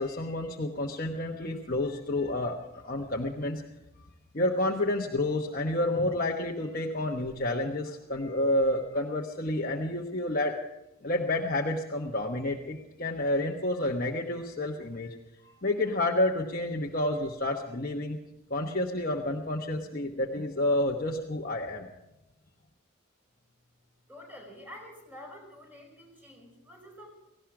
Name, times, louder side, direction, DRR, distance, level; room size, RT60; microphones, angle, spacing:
voice 1, 0.0-3.6 4.3-10.6 11.0-15.2 15.4-18.2 18.5-21.9, left 1 dB, 40° left, 0 dB, 1.1 m, -29 dB
voice 2, 24.1-27.1, left 1 dB, 10° right, 0 dB, 4.7 m, -48 dB
18.0 x 16.5 x 4.9 m, 0.91 s
head